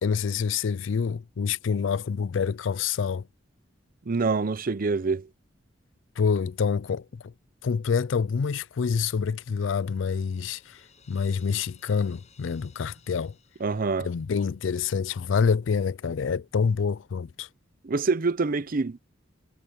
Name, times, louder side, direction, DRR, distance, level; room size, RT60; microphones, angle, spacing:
voice 1, 0.0-3.3 6.2-7.3 7.6-13.4 14.0-17.5, left 6 dB, 80° left, 0.4 m, -27 dB
voice 2, 4.1-5.3 13.6-14.1 17.8-19.0, right 4 dB, 50° right, 0.6 m, -26 dB
Crash cymbal, 9.7-14.7, left 7 dB, 40° left, 6.2 m, -60 dB
head